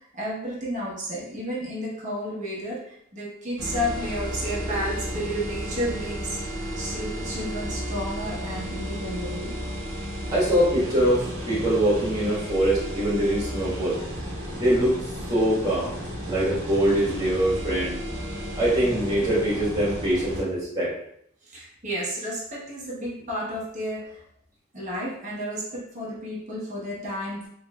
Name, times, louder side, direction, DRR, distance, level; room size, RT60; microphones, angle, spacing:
voice 1, 0.0-6.4 6.8-9.6 21.5-24.2 24.7-27.5, equal, 35° right, -5 dB, 1.0 m, -32 dB
sound 1, 3.6-20.4, equal, 80° right, 1.1 m, -33 dB
voice 2, 10.3-14.0 14.6-14.9 15.3-15.9 16.3-18.0 18.6-20.9, right 1 dB, 20° right, -9 dB, 1.4 m, -23 dB
3.1 x 3.1 x 2.3 m, 0.70 s
head